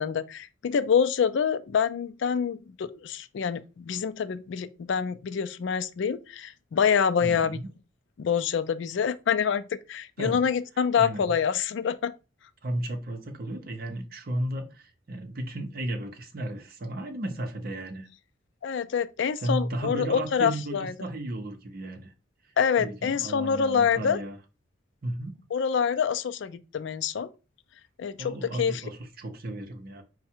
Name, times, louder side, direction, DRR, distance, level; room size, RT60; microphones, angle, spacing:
voice 1, 0.0-7.6 8.2-9.6 9.9-12.1 18.6-20.9 22.6-24.2 25.5-27.3 28.0-28.8, left 7 dB, 60° left, 0.4 m, -26 dB
voice 2, 7.2-7.7 10.2-10.5 11.0-11.3 12.6-18.1 19.4-22.1 22.8-24.4 25.0-25.4 28.2-30.0, right 1 dB, 50° right, 0.7 m, -34 dB
4.7 x 2.1 x 4.4 m
head